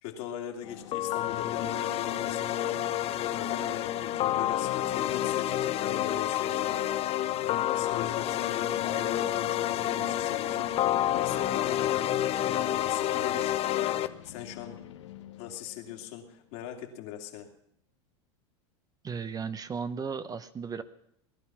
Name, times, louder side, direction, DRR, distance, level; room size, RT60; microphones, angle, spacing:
voice 1, 0.0-2.9 3.3-6.9 7.4-14.8 15.4-17.5, left 9 dB, 65° left, 2 dB, 2.7 m, -40 dB
sound 1, 0.6-16.9, left 10 dB, 85° left, 1.4 m, -48 dB
sound 2, 0.9-14.1, left 12 dB, 45° left, 0.8 m, -29 dB
voice 2, 19.0-20.8, right 6 dB, 25° right, 12 dB, 0.9 m, -35 dB
19.0 x 11.5 x 6.1 m, 0.74 s
hypercardioid pair, 95°, 15 cm